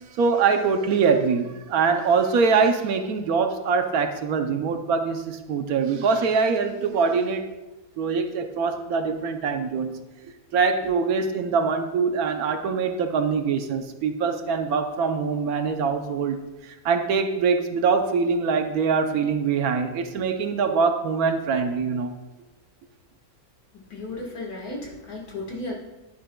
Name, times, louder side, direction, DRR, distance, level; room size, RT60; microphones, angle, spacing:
voice 1, 0.0-7.5 8.0-10.0 10.5-16.4 16.7-22.1, right 5 dB, 70° right, 7 dB, 1.2 m, -23 dB
voice 2, 23.7-25.7, left 2 dB, 75° left, -1 dB, 2.2 m, -34 dB
11.0 x 10.0 x 2.3 m, 1.1 s
omnidirectional pair, 1.7 m